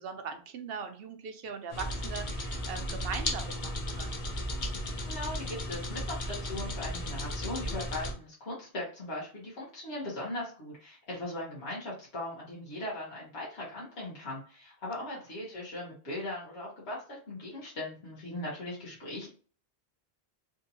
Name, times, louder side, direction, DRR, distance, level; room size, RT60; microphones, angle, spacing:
voice 1, 0.0-4.3 15.0-15.2, right 6 dB, 70° right, 7 dB, 0.8 m, -40 dB
sound 1, 1.7-8.1, left 1 dB, 55° left, 0.9 m, -35 dB
voice 2, 5.1-19.3, left 1 dB, 90° left, -6 dB, 1.4 m, -39 dB
3.5 x 2.7 x 2.7 m, 0.41 s
omnidirectional pair, 1.0 m